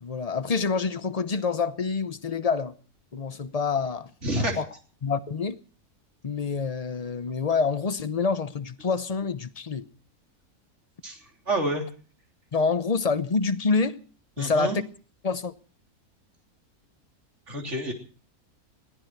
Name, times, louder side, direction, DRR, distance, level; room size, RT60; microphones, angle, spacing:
voice 1, 0.0-2.8 3.1-4.1 4.4-4.7 5.0-5.6 6.2-9.9 12.5-14.0 14.4-14.8 15.2-15.5, left 4 dB, 35° left, 0.7 m, -27 dB
voice 2, 4.2-4.6 11.0-11.2 11.5-11.8 14.4-14.8 17.5-17.9, right 1 dB, 50° right, 3.7 m, -28 dB
21.0 x 15.0 x 4.6 m
omnidirectional pair, 1.6 m